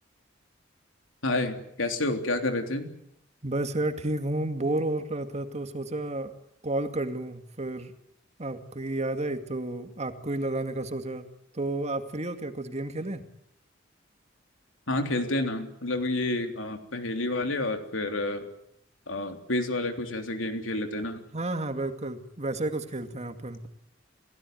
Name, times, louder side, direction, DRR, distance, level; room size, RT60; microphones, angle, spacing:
voice 1, 1.2-2.9 14.9-18.5 19.1-21.2, left 2 dB, 80° left, 6 dB, 3.5 m, -29 dB
voice 2, 3.4-6.3 6.6-7.9 8.4-11.3 11.5-13.2 21.3-23.6, right 2 dB, 35° right, 8 dB, 2.2 m, -31 dB
29.0 x 17.0 x 9.3 m, 0.75 s
head